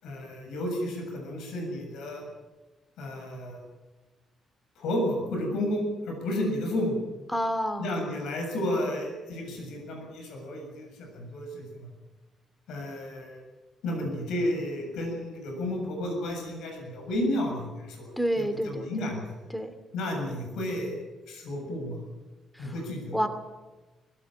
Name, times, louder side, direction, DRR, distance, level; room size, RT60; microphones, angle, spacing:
voice 1, 0.0-2.3 3.0-3.6 4.8-7.0 7.8-11.9 12.7-13.4 13.8-18.1 18.4-19.4 19.9-21.0 21.3-22.0 22.6-23.2, left 1 dB, 85° left, 3 dB, 7.2 m, -32 dB
voice 2, 7.3-7.9 18.2-19.1 19.5-19.7 22.5-22.7 23.1-23.3, equal, 5° left, 9 dB, 2.7 m, -29 dB
21.0 x 18.0 x 9.1 m, 1.2 s
cardioid pair, 90°, 0 cm